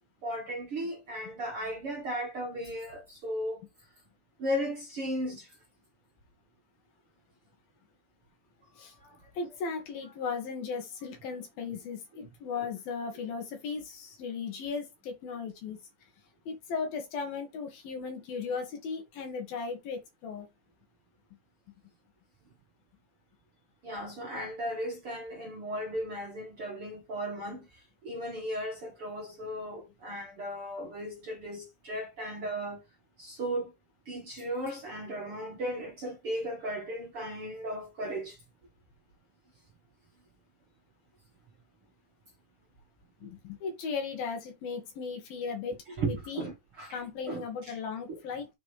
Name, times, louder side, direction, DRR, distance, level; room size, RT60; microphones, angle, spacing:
voice 1, 0.2-3.6 4.4-5.5 8.8-9.2 23.8-27.7 28.0-32.8 33.2-33.7 34.1-38.4 43.2-43.3 45.9-47.0 47.3-47.7 48.1-48.2, right 1 dB, 45° right, 2.1 m, -36 dB
voice 2, 9.4-15.8 16.5-20.5 43.2-46.5 46.9-48.5, left 5 dB, 65° left, 3.9 m, -36 dB
7.7 x 6.4 x 3.4 m
omnidirectional pair, 4.6 m